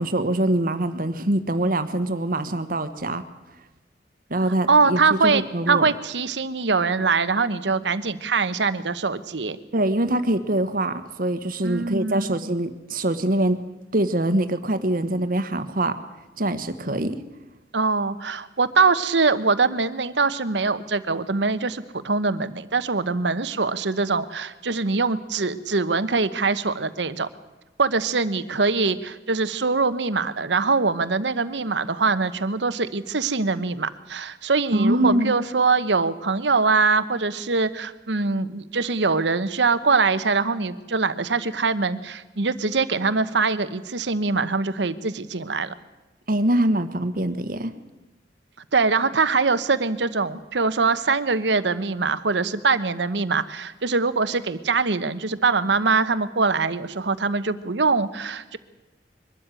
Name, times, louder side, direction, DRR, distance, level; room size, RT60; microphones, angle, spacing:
voice 1, 0.0-3.2 4.3-5.8 9.7-13.6 13.9-16.0 16.4-17.2 34.7-35.3 46.3-47.7, right 1 dB, 55° right, 11 dB, 1.3 m, -24 dB
voice 2, 4.7-9.6 11.6-12.3 17.7-27.3 27.8-45.7 48.7-58.6, right 4 dB, 90° right, 13 dB, 1.1 m, -23 dB
22.5 x 13.0 x 9.1 m, 1.1 s
head